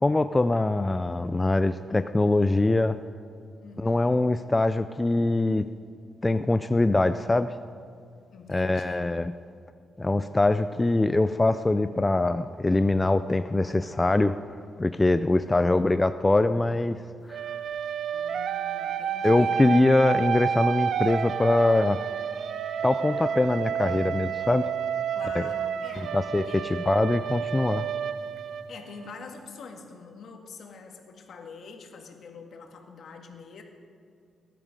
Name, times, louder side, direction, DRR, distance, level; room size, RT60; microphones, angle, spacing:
voice 1, 0.0-3.0 3.8-5.7 6.2-7.5 8.5-9.3 10.0-14.3 14.8-17.0 17.3-17.4 19.2-22.0 22.8-24.7 25.4-25.5 26.0-26.4 26.7-27.9, left 2 dB, 15° left, 10 dB, 0.4 m, -23 dB
voice 2, 3.6-4.2 8.3-9.1 15.4-15.8 18.1-19.6 25.1-26.2 26.5-26.6 28.5-33.6, left 4 dB, 65° left, 3 dB, 1.9 m, -45 dB
sound 1, 17.3-29.1, right 8 dB, 70° right, 0.5 m, -30 dB
19.0 x 11.0 x 5.2 m, 2.4 s
cardioid pair, 100°, 0 cm